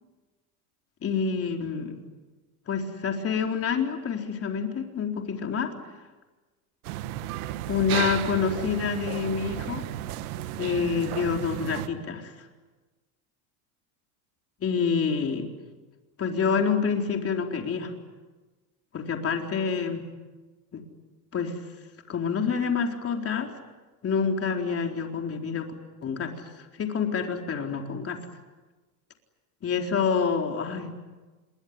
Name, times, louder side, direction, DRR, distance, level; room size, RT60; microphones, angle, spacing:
voice 1, 1.0-2.0 2.7-5.7 7.7-9.8 10.6-12.3 14.6-15.5 16.2-17.9 18.9-20.1 20.7-20.8 21.3-21.6 22.1-23.6 24.0-25.7 26.0-28.2 29.6-31.0, left 6 dB, 30° left, 3 dB, 4.2 m, -27 dB
sound 1, 6.8-11.9, right 13 dB, 75° right, 1.7 m, -33 dB
27.0 x 22.5 x 9.8 m, 1.2 s
supercardioid pair, 110°, 44 cm